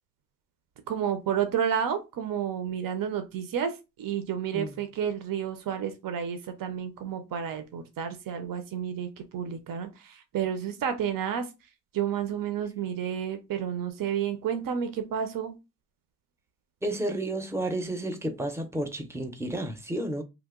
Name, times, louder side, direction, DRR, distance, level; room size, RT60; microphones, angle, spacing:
voice 1, 0.9-11.5 11.9-15.5, right 8 dB, 70° right, 0.6 m, -31 dB
voice 2, 16.8-20.2, right 1 dB, 10° right, 0.5 m, -31 dB
2.8 x 2.0 x 3.5 m
cardioid pair, 95°, 35 cm